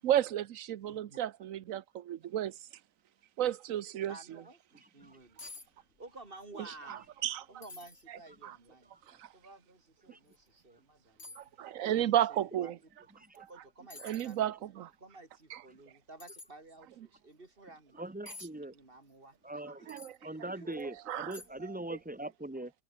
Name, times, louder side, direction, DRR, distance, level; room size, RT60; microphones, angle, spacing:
voice 1, 0.0-2.6 3.4-4.1 6.9-7.4 8.4-8.6 9.1-9.3 11.4-12.8 13.3-13.5 14.0-14.9 15.5-15.6 19.9-20.1 20.4-20.5 20.8-22.0, right 11 dB, 85° right, 1.1 m, -33 dB
voice 2, 0.8-1.2 4.1-5.4 5.8-7.1 7.5-9.0 9.3-12.7 13.3-14.5 15.0-18.0 18.7-19.9 20.2-20.7 21.5-21.8, right 2 dB, 40° right, 3.4 m, -53 dB
sound 1, 5.0-5.1 5.4-5.7 6.0-6.5 6.9-7.0 7.6-8.0 8.7-8.8 10.3-10.4 11.2-11.5 13.3-13.5 13.9-14.4 16.2-16.5 18.3-18.5 19.9-20.2 20.7-20.8 21.3-21.7 22.0-22.1, left 2 dB, 60° left, 4.7 m, -49 dB
voice 3, 18.0-18.7 19.4-20.0 20.2-22.7, right 1 dB, 10° right, 0.6 m, -41 dB
omnidirectional pair, 1.4 m